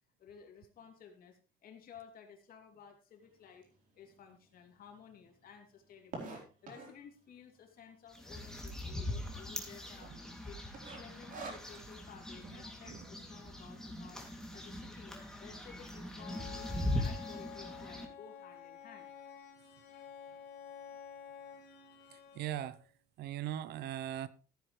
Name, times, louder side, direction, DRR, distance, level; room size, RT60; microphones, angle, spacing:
voice 1, 0.2-3.7 3.9-6.3 6.6-10.6 11.0-14.3 14.5-19.1, left 7 dB, 60° left, 3.0 m, -55 dB
sound 1, 3.6-3.7 4.3-4.4 4.6-4.7 4.9-7.1 7.7-8.1 8.5-8.6 8.8-8.9 9.4-9.8 10.1-10.3 10.7-12.0, right 3 dB, 55° right, 4.0 m, -46 dB
sound 2, 8.1-18.1, left 1 dB, 5° left, 2.7 m, -41 dB
Bowed string instrument, 16.1-22.9, left 8 dB, 85° left, 3.3 m, -50 dB
voice 2, 22.1-22.8 23.2-24.3, right 12 dB, 75° right, 0.8 m, -39 dB
15.0 x 9.5 x 3.3 m
cardioid pair, 110°, 17 cm